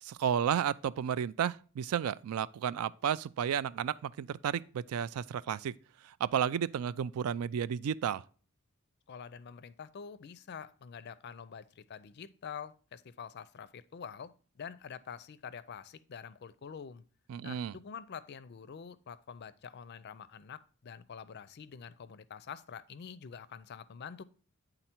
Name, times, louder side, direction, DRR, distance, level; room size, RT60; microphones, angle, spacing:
voice 1, 0.0-5.7 6.0-8.2 17.3-17.7, right 8 dB, 85° right, 0.3 m, -32 dB
voice 2, 9.1-17.0 17.4-24.2, left 7 dB, 50° left, 0.4 m, -46 dB
9.1 x 3.9 x 4.3 m
head